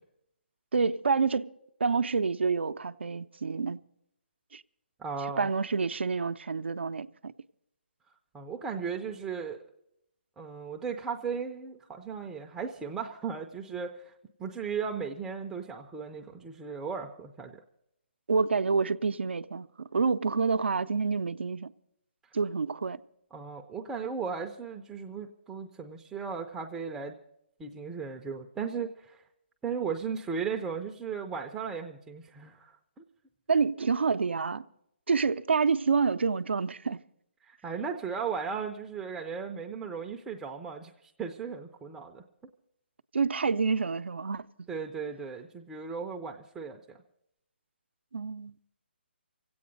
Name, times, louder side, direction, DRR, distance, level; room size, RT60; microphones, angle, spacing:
voice 1, 0.7-1.5 1.8-3.8 4.5-4.6 5.4-7.3 18.3-21.7 22.3-23.0 33.5-34.6 35.1-37.0 43.1-44.7 48.1-48.5, right 5 dB, 85° right, 0.5 m, -28 dB
voice 2, 5.0-5.5 8.3-9.6 10.4-14.1 14.4-17.6 23.3-27.1 27.6-29.2 29.6-33.0 37.5-42.2 44.7-47.0, right 6 dB, 5° right, 0.4 m, -36 dB
24.0 x 8.6 x 5.1 m
hypercardioid pair, 155°, 6 cm